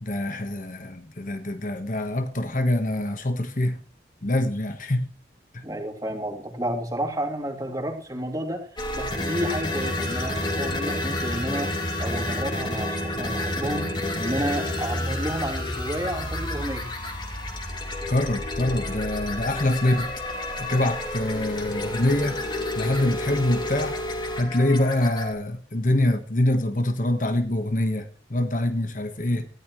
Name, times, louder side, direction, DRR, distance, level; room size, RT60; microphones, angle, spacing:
voice 1, 0.0-3.8 4.2-5.1 5.5-5.6 18.1-20.1 20.6-22.4 22.7-24.0 24.3-29.5, left 1 dB, 45° left, 1.4 m, -25 dB
voice 2, 5.6-8.7 8.9-11.7 12.0-13.9 14.2-16.8, right 1 dB, 20° right, 2.9 m, -30 dB
sound 1, 8.8-25.3, left 1 dB, 25° left, 2.6 m, -30 dB
18.5 x 14.5 x 3.2 m
head